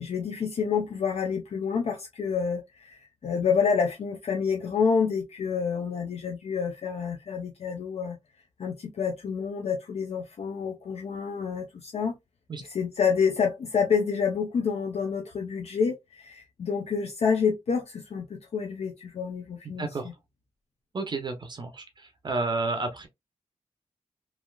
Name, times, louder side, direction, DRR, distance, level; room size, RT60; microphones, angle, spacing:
voice 1, 0.0-8.2 8.6-12.2 12.7-19.9, left 6 dB, 60° left, 0.6 m, -28 dB
voice 2, 19.8-20.1 20.9-23.1, right 3 dB, 40° right, 0.6 m, -31 dB
3.2 x 2.5 x 2.3 m
wide cardioid pair, 170°, 12 cm